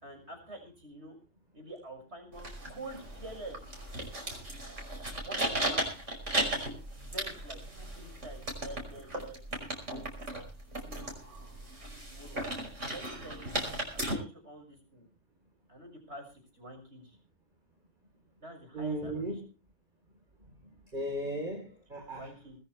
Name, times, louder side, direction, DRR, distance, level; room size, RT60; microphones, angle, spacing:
voice 1, 0.0-1.2 1.5-3.6 5.1-5.9 7.0-9.4 10.8-11.0 11.9-12.4 12.8-13.5 13.9-15.1 15.7-17.2 18.4-19.3 22.1-22.6, right 1 dB, 65° right, 4 dB, 6.5 m, -47 dB
sound 1, 2.3-14.1, right 1 dB, 90° right, 5.8 m, -36 dB
voice 2, 18.7-19.5 20.9-22.3, right 1 dB, 40° right, 2 dB, 4.0 m, -36 dB
20.5 x 14.0 x 3.3 m, 0.33 s
omnidirectional pair, 1.2 m